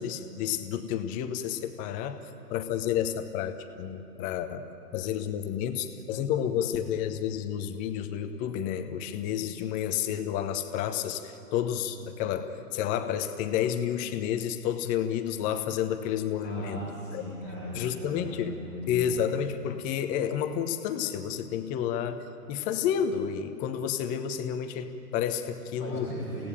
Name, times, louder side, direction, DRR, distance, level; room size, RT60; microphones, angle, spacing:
voice 1, 0.0-2.2 2.5-4.6 4.9-16.8 17.1-17.2 17.7-18.5 18.9-26.1, left 9 dB, 15° left, 9 dB, 0.9 m, -30 dB
voice 2, 16.4-19.2 25.8-26.5, equal, 25° right, -6 dB, 6.4 m, -38 dB
28.5 x 17.0 x 8.9 m, 2.9 s
figure-of-eight pair, 120°, 47 cm